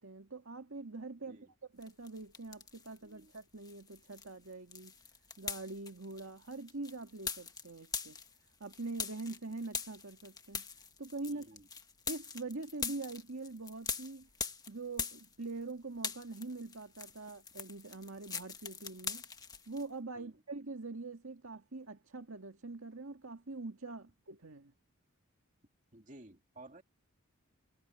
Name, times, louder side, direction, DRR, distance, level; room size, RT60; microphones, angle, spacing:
voice 1, 0.0-4.9 5.4-8.2 8.6-10.7 11.0-11.5 12.1-14.3 14.7-19.2 19.7-24.7, right 3 dB, 75° right, 2.0 m, -44 dB
sound 1, 1.8-3.0 3.3-15.7 16.0-19.9, left 5 dB, 20° left, 1.4 m, -43 dB
voice 2, 3.0-3.3 11.3-11.7 20.1-20.3 25.9-26.8, right 2 dB, 40° right, 2.5 m, -55 dB
head